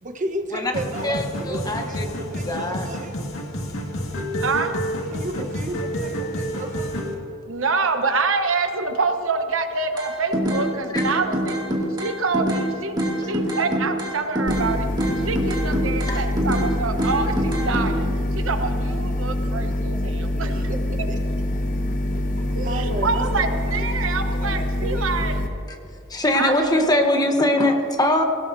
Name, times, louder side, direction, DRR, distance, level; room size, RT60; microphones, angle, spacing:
voice 1, 0.0-3.2 5.1-7.1 19.4-19.5 20.4-21.2 22.6-23.8 24.4-25.0, right 1 dB, 40° right, 5 dB, 1.1 m, -33 dB
sound 1, 0.7-7.1, equal, 85° left, 2.0 m, -29 dB
voice 2, 1.0-2.2 2.5-2.9 10.9-11.0 13.2-13.3 16.0-16.2 25.7-25.8 26.1-28.2, left 1 dB, 20° left, 4 dB, 1.1 m, -22 dB
voice 3, 4.4-4.7 7.5-11.6 12.0-14.9 15.2-20.7 22.5-25.5 26.3-27.0, right 4 dB, 70° right, 6 dB, 1.0 m, -26 dB
sound 2, 10.0-10.7 11.0-12.7 13.0-14.7 15.0-16.7 17.0-17.9, equal, 20° right, 2.4 m, -24 dB
sound 3, 14.5-25.5, left 1 dB, 40° left, 1.2 m, -25 dB
23.0 x 17.5 x 2.7 m, 2.5 s
head